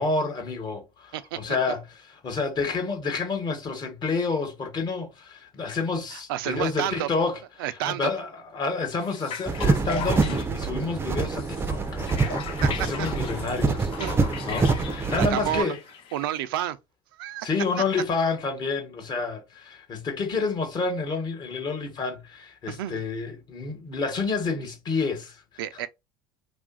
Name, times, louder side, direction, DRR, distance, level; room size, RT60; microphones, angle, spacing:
voice 1, 0.0-7.4 7.8-12.1 12.7-13.9 14.5-15.8 17.4-25.4 25.7-25.8, left 4 dB, 40° left, 1.1 m, -29 dB
voice 2, 6.1-7.1 7.6-8.1 12.6-12.7 13.0-13.1 14.0-14.2 15.2-15.7 16.1-16.8 17.2-17.5 22.7-23.0 25.6-25.9, right 12 dB, 90° right, 0.4 m, -30 dB
sound 1, 9.0-16.4, left 6 dB, 55° left, 0.5 m, -38 dB
sound 2, 9.5-15.6, right 4 dB, 20° right, 0.5 m, -26 dB
2.7 x 2.4 x 2.4 m
supercardioid pair, 95°, 11 cm